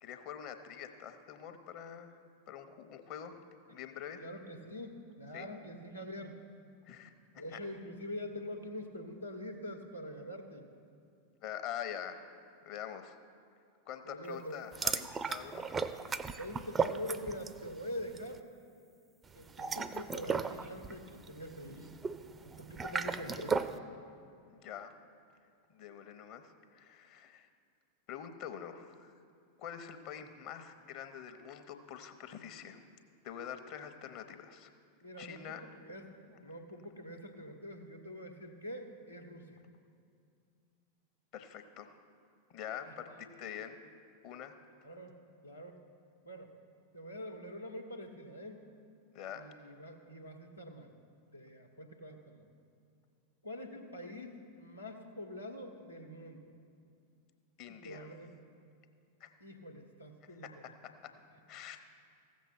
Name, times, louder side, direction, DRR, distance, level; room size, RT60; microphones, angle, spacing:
voice 1, 0.0-2.2 2.5-3.4 3.7-4.2 5.3-5.4 6.9-7.1 7.5-7.6 11.4-12.3 12.6-13.2 13.9-15.8 24.5-24.9 25.7-27.5 28.1-29.1 29.6-32.9 33.2-34.7 35.2-35.6 36.1-36.5 41.3-42.0 42.5-43.8 44.2-44.6 49.1-49.4 57.6-58.1 59.2-59.3 60.4-61.1 61.5-61.8, left 9 dB, 40° left, 8 dB, 0.9 m, -45 dB
voice 2, 4.2-6.3 7.3-10.7 14.0-14.6 16.4-18.4 19.3-22.0 22.4-23.6 35.0-36.1 36.4-39.6 42.7-43.2 44.8-45.2 45.4-45.8 46.2-46.5 46.9-48.7 49.3-50.9 51.3-52.5 53.4-56.5 57.7-58.3 59.4-60.5 61.3-61.4, equal, 85° left, 1 dB, 1.2 m, -45 dB
sound 1, 14.7-17.7 17.9-18.2 19.4-23.8, right 5 dB, 20° right, 0.5 m, -36 dB
15.0 x 7.3 x 6.0 m, 2.4 s
figure-of-eight pair, 90°, 0 cm